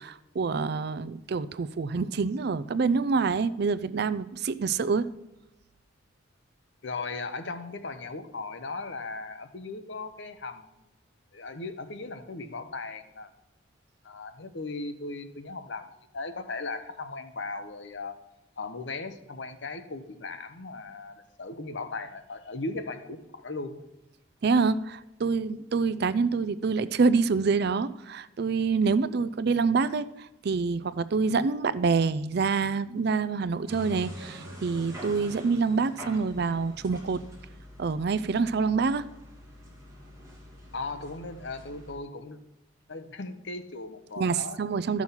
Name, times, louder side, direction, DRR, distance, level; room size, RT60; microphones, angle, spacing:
voice 1, 0.0-5.1 24.4-37.2 37.8-39.1 44.2-45.0, right 4 dB, 55° right, 16 dB, 0.4 m, -26 dB
voice 2, 6.8-10.7 11.3-13.3 14.0-18.2 18.6-23.8 40.7-42.4 42.9-44.6, left 3 dB, 60° left, 9 dB, 0.9 m, -37 dB
sound 1, 33.6-41.9, equal, 15° right, 2.6 m, -45 dB
13.0 x 6.1 x 5.6 m, 0.92 s
head